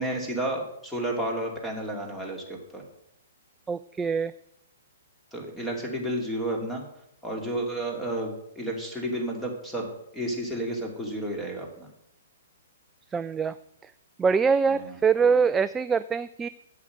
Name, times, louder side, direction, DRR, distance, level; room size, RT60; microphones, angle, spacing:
voice 1, 0.0-2.8 5.3-6.8 7.2-9.9 10.1-11.9 14.7-15.0, right 1 dB, 5° left, 1 dB, 2.6 m, -31 dB
voice 2, 3.7-4.3 13.1-13.5 14.2-16.5, right 5 dB, 15° right, 13 dB, 0.3 m, -24 dB
8.3 x 7.8 x 7.7 m, 0.77 s
figure-of-eight pair, 120°, 0 cm